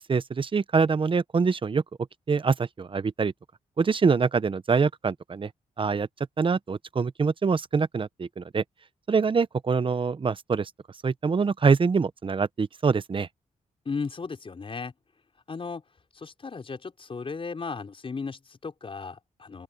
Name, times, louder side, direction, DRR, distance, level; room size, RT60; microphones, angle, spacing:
voice 1, 0.0-1.8 2.3-3.3 3.8-5.5 5.8-6.1 6.4-8.6 9.1-10.7 11.0-13.3, right 5 dB, 40° right, 0.9 m, -24 dB
voice 2, 13.9-14.9 15.5-15.8 16.1-19.6, left 4 dB, 45° left, 5.4 m, -35 dB
open air
cardioid pair, 80°, 13 cm